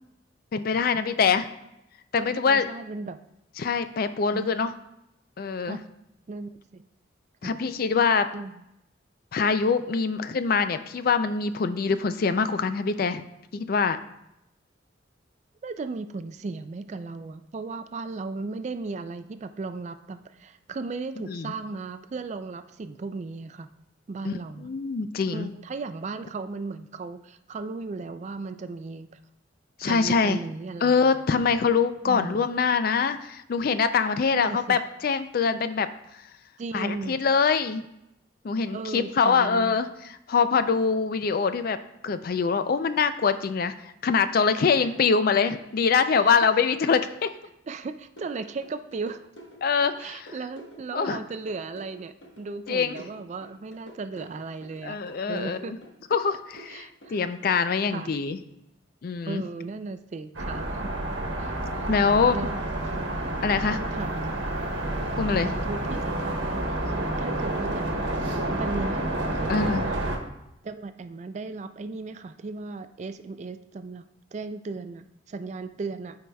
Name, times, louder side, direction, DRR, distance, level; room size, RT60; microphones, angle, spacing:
voice 1, 0.5-1.5 2.1-2.7 3.6-4.7 5.4-5.8 7.4-8.3 9.3-13.2 13.5-14.0 21.3-21.5 24.2-24.3 24.6-25.5 29.8-30.4 30.8-35.9 36.7-37.8 38.4-39.9 40.3-41.8 42.0-43.7 44.0-47.3 49.6-50.3 50.9-51.2 52.7-53.0 54.8-55.8 56.1-58.4 59.0-59.4 61.9-62.4 63.4-63.8 65.2-65.5 69.5-69.9, left 5 dB, 50° left, 11 dB, 0.4 m, -24 dB
voice 2, 2.2-3.2 4.3-4.5 5.7-5.8 6.3-6.9 7.4-7.6 8.3-8.6 15.6-23.7 24.1-24.7 25.3-29.1 29.8-30.9 32.0-32.5 34.3-34.8 36.6-37.2 38.7-39.8 44.8-44.9 46.1-46.3 47.7-49.2 50.0-55.0 55.3-55.7 56.7-57.2 57.9-58.1 59.3-60.9 61.4-62.0 62.3-62.6 63.9-64.1 65.3-67.8 68.5-69.0 69.3-70.0 70.6-76.2, right 3 dB, 35° right, 11 dB, 0.3 m, -36 dB
sound 1, 48.2-57.6, equal, 65° left, 1.2 m, -48 dB
sound 2, 60.3-70.2, right 1 dB, 85° right, 1.2 m, -29 dB
12.5 x 4.8 x 2.3 m, 0.86 s
head